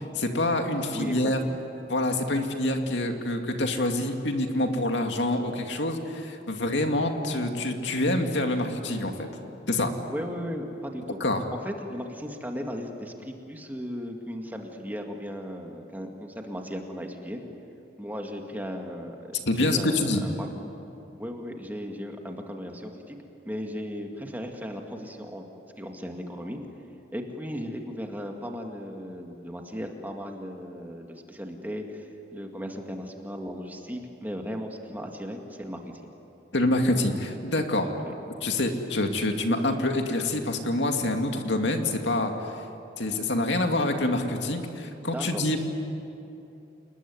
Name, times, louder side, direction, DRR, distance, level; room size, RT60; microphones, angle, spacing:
voice 1, 0.1-1.4 1.9-9.3 9.7-9.9 11.2-11.5 19.4-20.2 36.5-37.9 38.4-42.5 43.0-45.6, left 1 dB, 75° left, 4 dB, 2.4 m, -26 dB
voice 2, 0.9-1.6 10.1-11.2 11.6-17.4 18.0-20.5 21.2-23.2 23.5-25.5 25.8-26.6 27.1-36.1 38.0-38.1 45.1-45.6, equal, 10° right, 2 dB, 2.1 m, -36 dB
29.5 x 20.5 x 9.6 m, 2.8 s
head